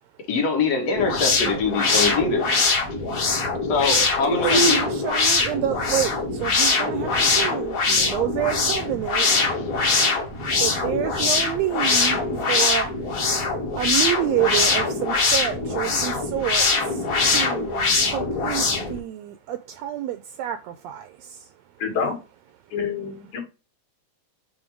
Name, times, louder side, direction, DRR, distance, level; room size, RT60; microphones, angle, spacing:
voice 1, 0.3-2.5 3.7-4.8 9.5-9.6, left 3 dB, 60° left, 2.3 m, -23 dB
sound 1, 0.9-19.0, left 3 dB, 45° left, 1.2 m, -22 dB
voice 2, 4.3-9.3 10.6-12.9 13.8-16.7 16.9-21.1, right 12 dB, 80° right, 1.5 m, -28 dB
voice 3, 21.8-22.2 22.7-23.4, left 6 dB, 90° left, 3.7 m, -27 dB
7.6 x 2.9 x 4.5 m
omnidirectional pair, 3.4 m